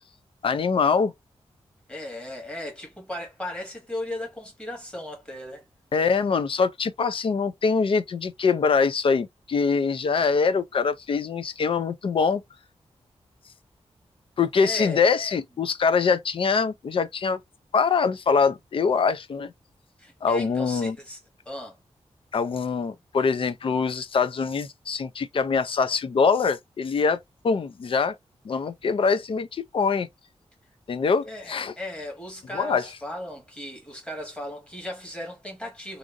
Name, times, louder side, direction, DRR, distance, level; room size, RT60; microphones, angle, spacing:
voice 1, 0.4-1.1 5.9-12.4 14.4-17.4 17.7-19.5 20.2-21.0 22.3-27.2 27.4-28.2 28.4-30.1 30.9-31.7 32.5-32.8, left 5 dB, 50° left, 0.4 m, -23 dB
voice 2, 1.9-5.6 14.6-15.0 20.0-21.2 21.4-21.8 31.2-36.0, left 1 dB, 10° left, 1.5 m, -36 dB
2.9 x 2.6 x 2.4 m
wide cardioid pair, 135°, 11 cm